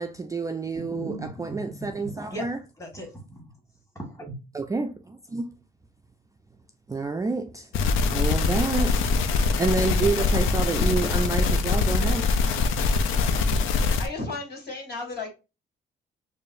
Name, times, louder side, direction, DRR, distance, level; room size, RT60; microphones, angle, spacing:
voice 1, 0.0-2.6 4.5-5.5 6.9-7.7 8.0-9.0 9.3-12.3, right 3 dB, 15° right, 0.3 m, -29 dB
voice 2, 0.7-2.5 2.8-3.5 3.9-4.4, right 1 dB, 15° left, 1.4 m, -38 dB
sound 1, 7.7-14.1, left 4 dB, 90° left, 0.5 m, -23 dB
voice 3, 14.0-15.3, left 3 dB, 55° left, 1.9 m, -34 dB
4.7 x 2.5 x 2.5 m
cardioid pair, 90°, 20 cm